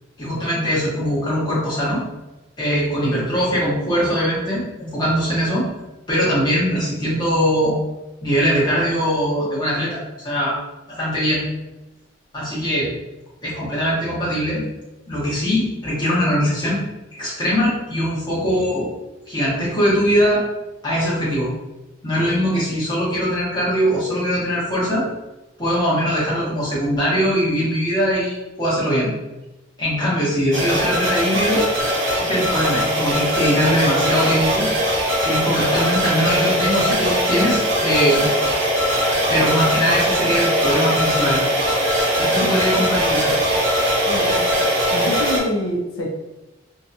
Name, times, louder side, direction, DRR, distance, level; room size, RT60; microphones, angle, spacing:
voice 1, 0.2-2.0 2.6-5.7 6.1-7.7 8.2-10.6 10.9-11.4 12.3-12.9 13.4-14.6 15.1-16.8 17.1-18.9 19.3-20.4 20.8-21.5 22.0-25.0 25.6-29.1 29.8-31.6 32.2-34.7 35.2-38.3 39.3-41.4 42.2-43.3, equal, 20° left, -8 dB, 1.0 m, -21 dB
sound 1, 30.5-45.4, equal, 80° right, 0.7 m, -20 dB
voice 2, 44.0-46.1, left 1 dB, 80° left, -1 dB, 0.5 m, -27 dB
2.6 x 2.2 x 2.6 m, 1.0 s
head